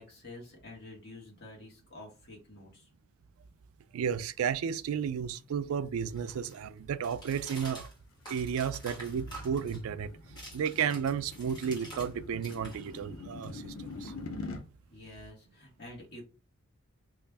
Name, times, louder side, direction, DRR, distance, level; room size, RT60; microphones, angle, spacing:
voice 1, 0.0-2.9 14.9-16.2, left 1 dB, 50° left, 1.5 m, -49 dB
voice 2, 3.9-7.9 8.3-10.1 10.5-14.1, right 7 dB, 85° right, 0.3 m, -33 dB
sound 1, 4.7-12.1 12.4-14.6, right 1 dB, 20° left, 1.2 m, -50 dB
sound 2, 8.2-14.6, left 3 dB, 80° left, 0.6 m, -45 dB
3.1 x 2.5 x 3.3 m
head